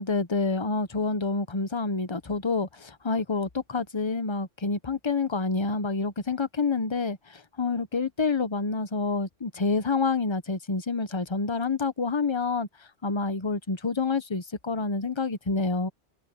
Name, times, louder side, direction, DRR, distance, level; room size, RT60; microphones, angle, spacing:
voice 1, 0.0-12.7 13.0-15.9, left 4 dB, 25° left, 1.0 m, -28 dB
omnidirectional pair, 1.3 m